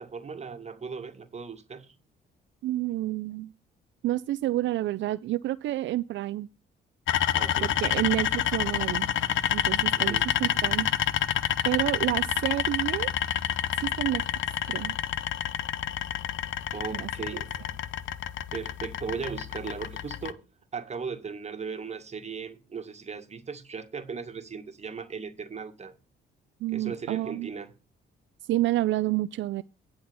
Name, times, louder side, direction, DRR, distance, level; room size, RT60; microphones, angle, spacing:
voice 1, 0.0-1.9 7.3-7.7 9.9-10.3 16.7-17.5 18.5-20.4 20.7-26.0 26.7-27.7, right 5 dB, 35° right, 1.8 m, -37 dB
voice 2, 2.6-3.5 4.0-6.5 7.6-9.1 9.5-10.9 11.6-13.1 13.7-14.2 14.7-14.9 16.9-17.1 26.6-27.5 28.4-29.6, right 15 dB, 70° right, 0.4 m, -29 dB
sound 1, 7.1-20.3, left 10 dB, 75° left, 0.7 m, -28 dB
10.0 x 4.3 x 6.8 m
cardioid pair, 90°, 20 cm